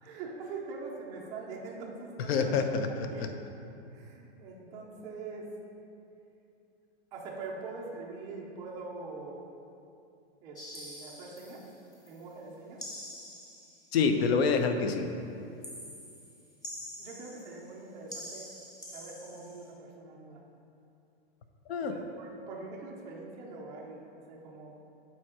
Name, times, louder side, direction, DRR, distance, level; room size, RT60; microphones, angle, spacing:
voice 1, 0.0-2.6 3.1-3.3 3.9-5.5 7.1-9.4 10.4-11.6 12.1-12.8 17.0-18.5 18.9-20.4 21.8-24.7, right 3 dB, 10° right, -3 dB, 0.3 m, -43 dB
voice 2, 2.3-3.3 13.9-15.1 21.7-21.9, left 5 dB, 70° left, 7 dB, 0.7 m, -27 dB
sound 1, 10.6-12.2 12.8-14.0 15.6-17.8 18.1-19.7, equal, 10° left, 0.8 m, -46 dB
7.3 x 4.4 x 4.8 m, 2.7 s
supercardioid pair, 160°, 32 cm